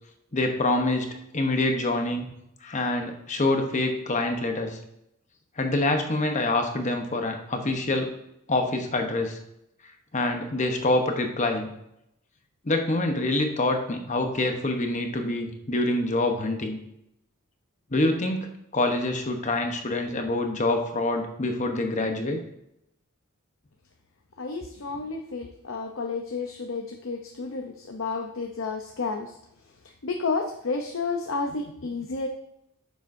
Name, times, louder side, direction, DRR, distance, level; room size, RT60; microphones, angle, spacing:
voice 1, 0.3-1.1 1.3-2.3 2.6-4.8 5.6-8.1 8.5-9.4 10.1-11.7 12.6-16.8 17.9-18.5 18.7-22.4, left 2 dB, 35° left, 4 dB, 0.9 m, -26 dB
voice 2, 24.4-29.4 30.0-32.3, left 4 dB, 65° left, 3 dB, 0.7 m, -31 dB
9.5 x 7.1 x 2.6 m, 0.79 s
head